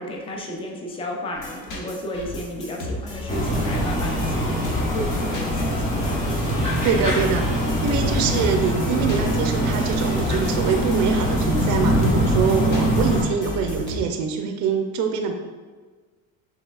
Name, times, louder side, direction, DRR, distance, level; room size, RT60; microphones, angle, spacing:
voice 1, 0.0-6.2, left 1 dB, 15° left, 1 dB, 0.4 m, -33 dB
sound 1, 1.3-14.0, left 1 dB, 55° left, 1.2 m, -34 dB
sound 2, 3.3-13.2, equal, 35° left, 1.3 m, -23 dB
voice 2, 6.8-15.4, right 6 dB, 55° right, 5 dB, 0.5 m, -24 dB
5.2 x 3.2 x 2.3 m, 1.4 s
cardioid pair, 150°, 36 cm